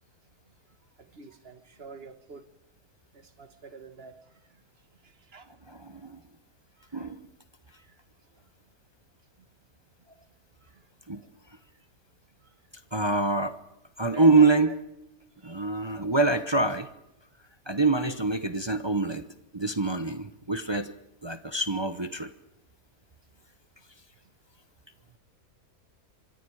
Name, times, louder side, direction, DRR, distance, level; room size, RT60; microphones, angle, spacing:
voice 1, 1.1-2.4 3.1-4.2 5.0-5.5 7.7-7.9 14.1-14.8 15.4-15.6, right 4 dB, 40° right, 10 dB, 1.7 m, -45 dB
voice 2, 5.7-6.2 6.9-7.2 11.1-11.2 12.9-13.6 14.0-14.7 15.4-16.9 17.7-19.3 19.5-20.9 21.2-22.3, right 3 dB, 25° right, 10 dB, 0.6 m, -25 dB
25.5 x 25.0 x 4.8 m, 0.90 s
omnidirectional pair, 1.6 m